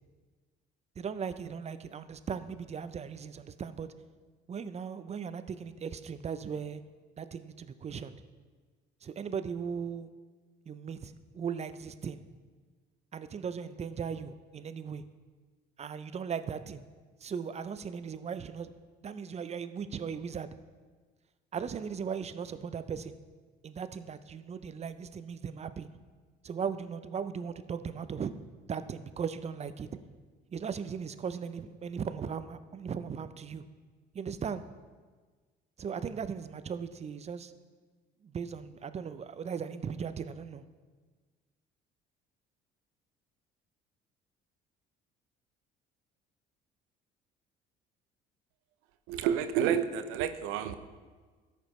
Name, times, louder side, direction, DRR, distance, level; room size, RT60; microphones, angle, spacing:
voice 1, 1.0-3.9 4.5-6.8 7.2-8.2 9.0-10.1 10.7-12.2 13.1-15.0 15.8-16.8 17.2-18.7 19.0-20.5 21.5-23.2 23.6-25.9 26.4-28.3 28.7-29.9 30.5-33.6 34.1-34.6 35.8-37.5 38.2-40.6, right 6 dB, 30° right, 12 dB, 0.5 m, -38 dB
voice 2, 49.1-50.7, right 9 dB, 80° right, 10 dB, 0.6 m, -29 dB
13.5 x 5.1 x 3.1 m, 1.4 s
supercardioid pair, 75°, 21 cm